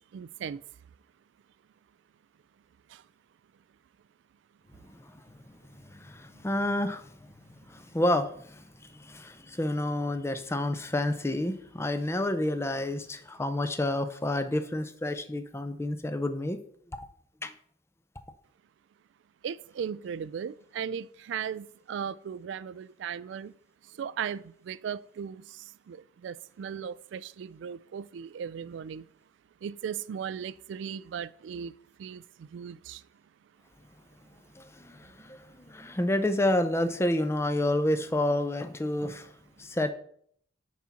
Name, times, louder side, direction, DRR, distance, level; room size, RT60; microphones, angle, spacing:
voice 1, 0.1-0.6 2.9-3.0 19.4-23.5 23.9-29.1 29.6-33.0, right 7 dB, 70° right, 0.3 m, -37 dB
voice 2, 5.9-7.0 7.7-8.6 9.0-16.6 16.9-17.1 17.4-17.5 34.6-39.3 39.6-39.9, left 1 dB, 15° left, 0.5 m, -29 dB
6.1 x 4.1 x 5.7 m
head